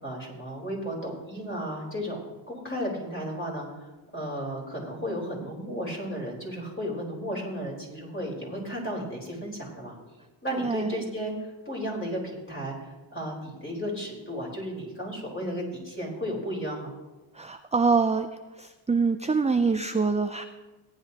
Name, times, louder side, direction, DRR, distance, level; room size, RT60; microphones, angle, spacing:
voice 1, 0.0-9.9 10.4-16.9, equal, 25° left, -3 dB, 4.3 m, -34 dB
voice 2, 10.5-11.0 17.3-18.3 18.6-20.4, right 4 dB, 15° right, 9 dB, 0.4 m, -25 dB
18.0 x 9.8 x 2.9 m, 1.2 s
cardioid pair, 55°, 48 cm